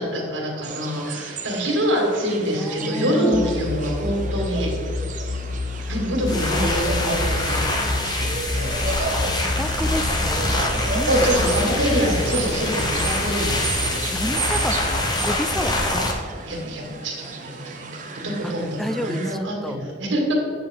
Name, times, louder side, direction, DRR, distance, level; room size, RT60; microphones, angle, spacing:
voice 1, 0.0-4.9 5.2-5.3 5.9-8.8 11.1-14.0 15.8-20.3, equal, 75° right, -1 dB, 2.3 m, -26 dB
sound 1, 0.6-19.3, right 4 dB, 45° right, 0.8 m, -34 dB
voice 2, 2.6-3.5 5.7-5.9 6.5-6.8 7.0-7.2 7.5-7.7 9.3-10.6 10.9-11.3 14.1-16.0 18.4-18.5 18.8-19.8, equal, ahead, 10 dB, 0.3 m, -30 dB
sound 2, 3.3-15.1, left 2 dB, 75° left, 0.6 m, -29 dB
sound 3, 6.2-16.1, left 1 dB, 20° left, 1.0 m, -25 dB
9.3 x 6.7 x 3.8 m, 2.2 s
head